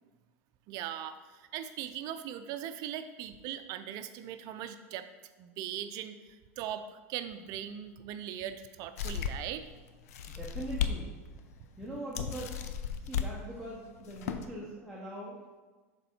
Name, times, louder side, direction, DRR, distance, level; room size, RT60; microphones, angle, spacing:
voice 1, 0.7-5.1 5.4-9.6, right 10 dB, 50° right, 10 dB, 0.5 m, -40 dB
sound 1, 9.0-9.6 10.1-11.0 11.4-11.5 12.2-13.3 14.0-14.5, left 8 dB, 80° left, 0.5 m, -34 dB
voice 2, 10.3-11.1 11.8-12.6 13.0-15.4, right 1 dB, ahead, -6 dB, 1.0 m, -41 dB
6.7 x 3.7 x 4.4 m, 1.3 s
supercardioid pair, 115°, 8 cm